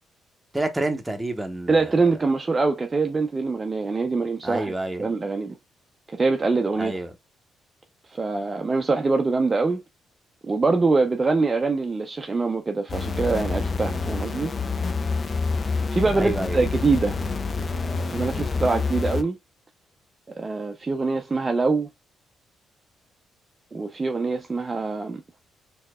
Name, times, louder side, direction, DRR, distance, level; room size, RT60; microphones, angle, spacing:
voice 1, 0.5-1.9 4.4-5.0 6.8-7.1 16.2-16.6, right 2 dB, 10° right, 0.8 m, -28 dB
voice 2, 1.7-5.6 6.1-7.0 8.1-9.8 10.4-14.5 15.9-17.2 17.7-19.4 20.4-21.9 23.7-25.2, right 3 dB, 25° right, 0.5 m, -24 dB
sound 1, 12.9-19.2, left 4 dB, 35° left, 0.5 m, -27 dB
4.3 x 2.8 x 2.2 m
cardioid pair, 90°, 0 cm